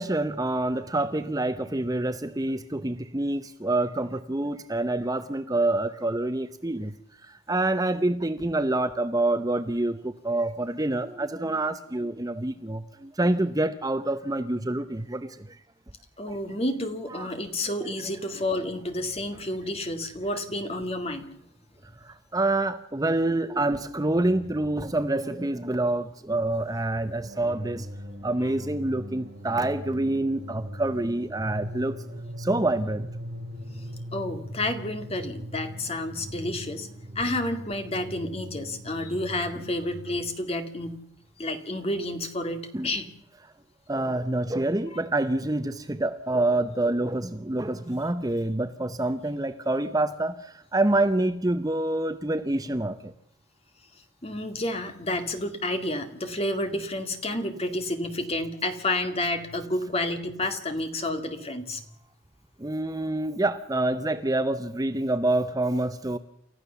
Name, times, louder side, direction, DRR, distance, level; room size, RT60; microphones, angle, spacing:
voice 1, 0.0-6.9 7.2-15.5 16.3-16.4 17.1-17.3 22.0-27.9 28.2-32.0 32.4-33.1 42.7-42.9 43.9-53.1 62.6-66.2, right 2 dB, 20° right, 10 dB, 0.7 m, -27 dB
voice 2, 16.2-21.3 34.1-36.9 37.2-41.0 41.4-43.1 44.9-45.0 54.2-61.8, left 1 dB, 30° left, 7 dB, 2.2 m, -30 dB
sound 1, 27.2-40.0, equal, 50° right, 4.0 m, -40 dB
29.5 x 14.0 x 6.9 m, 0.76 s
head